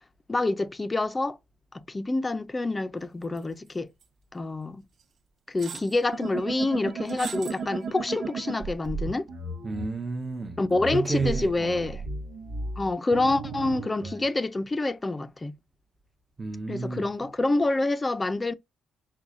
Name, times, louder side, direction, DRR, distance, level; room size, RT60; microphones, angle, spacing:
voice 1, 0.3-1.4 1.7-3.9 4.3-4.8 5.5-9.3 10.6-12.0 12.8-15.5 16.7-18.5, left 2 dB, 20° left, 0.5 m, -27 dB
sound 1, 3.4-3.7 4.0-4.1 5.0-5.1 5.6-6.0 7.1-7.6 8.1-8.2, right 6 dB, 55° right, 0.7 m, -40 dB
sound 2, 6.1-9.9 10.7-14.3, right 3 dB, 80° right, 0.9 m, -35 dB
voice 2, 9.6-10.6 10.9-11.9 16.4-17.1, right 4 dB, 25° right, 0.7 m, -31 dB
4.7 x 2.3 x 3.8 m
cardioid pair, 90°, 0 cm